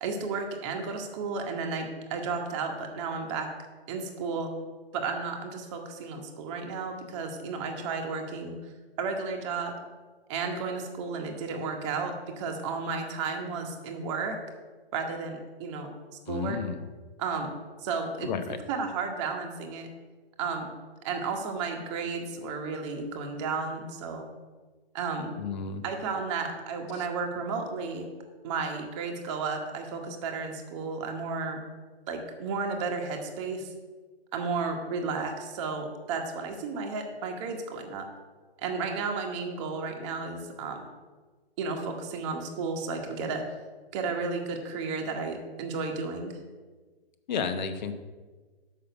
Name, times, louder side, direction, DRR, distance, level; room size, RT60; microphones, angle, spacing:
voice 1, 0.0-3.5 3.9-4.5 4.9-8.5 9.0-9.7 10.3-14.4 14.9-15.9 16.3-16.6 17.2-17.5 17.8-18.3 18.7-19.9 20.4-20.7 21.0-24.3 24.9-25.3 25.8-28.1 28.4-31.6 32.1-33.7 34.3-38.0 38.6-40.8 41.6-43.4 43.9-46.3, right 4 dB, 30° right, 3 dB, 1.1 m, -33 dB
voice 2, 16.3-16.8 18.2-18.6 25.4-25.8 26.9-27.1 47.3-47.9, left 6 dB, 45° left, 9 dB, 0.9 m, -32 dB
6.4 x 5.5 x 6.9 m, 1.4 s
hypercardioid pair, 140°, 31 cm